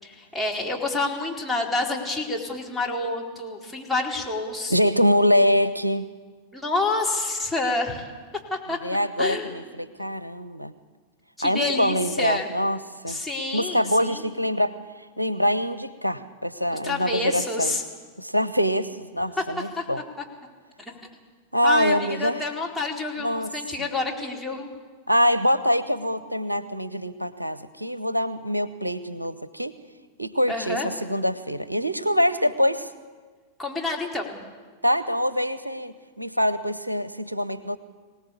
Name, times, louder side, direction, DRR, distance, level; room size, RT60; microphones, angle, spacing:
voice 1, 0.0-4.8 6.5-8.1 8.5-8.8 9.2-9.6 11.4-12.5 13.1-14.3 16.7-17.8 19.4-19.5 19.8-19.9 20.8-21.0 21.6-24.7 30.5-30.9 33.6-34.4, left 2 dB, 5° left, -2 dB, 4.4 m, -28 dB
voice 2, 4.7-6.1 8.8-10.7 11.4-12.8 13.0-13.2 13.5-14.7 15.2-17.8 18.2-20.0 21.5-22.5 23.2-23.5 25.1-29.8 30.2-32.9 34.8-37.8, equal, 85° right, 15 dB, 0.9 m, -24 dB
24.5 x 18.5 x 8.6 m, 1.5 s
figure-of-eight pair, 90°, 0 cm